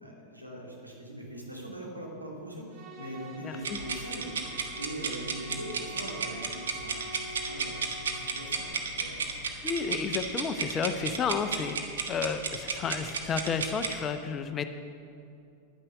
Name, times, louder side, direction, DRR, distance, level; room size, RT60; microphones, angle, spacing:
voice 1, 0.0-4.3 4.8-7.0 7.5-9.3, right 1 dB, 90° right, -3 dB, 2.6 m, -41 dB
sound 1, 2.7-8.7, right 2 dB, 35° right, 1.5 m, -46 dB
sound 2, 3.6-14.0, right 5 dB, 65° right, 1.3 m, -33 dB
voice 2, 9.6-14.6, left 5 dB, 25° left, 9 dB, 0.7 m, -31 dB
10.5 x 9.9 x 6.5 m, 2.6 s
figure-of-eight pair, 90°, 0 cm